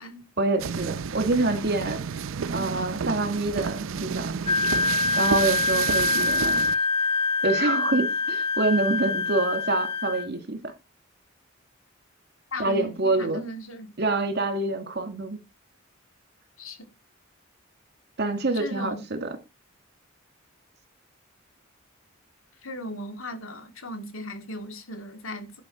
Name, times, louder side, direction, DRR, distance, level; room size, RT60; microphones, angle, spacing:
voice 1, 0.4-2.0 2.5-4.3 5.2-6.8 7.4-10.7 12.6-13.5 14.0-15.4 18.2-19.3, right 2 dB, 55° right, 2.1 m, -26 dB
sound 1, 0.6-6.7, right 6 dB, 75° right, 0.5 m, -31 dB
Wind instrument woodwind instrument, 4.5-10.3, left 4 dB, 30° left, 0.4 m, -25 dB
voice 2, 12.5-13.9 16.6-16.9 18.5-19.0 22.6-25.5, left 1 dB, 80° left, 2.1 m, -37 dB
11.0 x 5.2 x 5.4 m
head